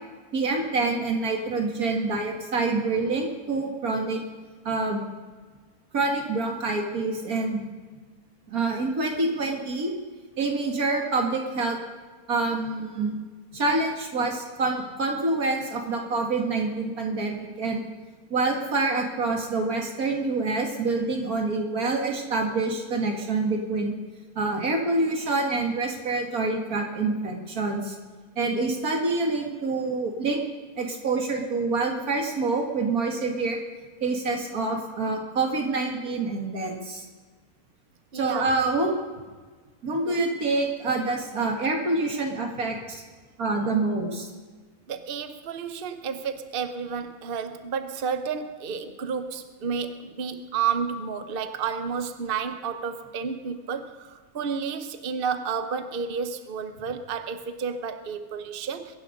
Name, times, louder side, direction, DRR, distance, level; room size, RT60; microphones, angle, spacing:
voice 1, 0.3-4.2 4.6-5.0 5.9-7.7 8.5-9.9 10.4-11.8 12.3-13.2 13.5-17.8 18.3-24.0 24.4-28.0 28.4-30.4 30.8-33.6 34.0-37.1 38.1-39.0 39.8-43.0 43.4-44.3, right 3 dB, 85° right, 2 dB, 2.6 m, -26 dB
voice 2, 38.1-38.5 40.0-40.2 44.9-58.9, right 6 dB, 45° right, 9 dB, 1.0 m, -31 dB
23.0 x 10.5 x 5.3 m, 1.4 s
omnidirectional pair, 1.5 m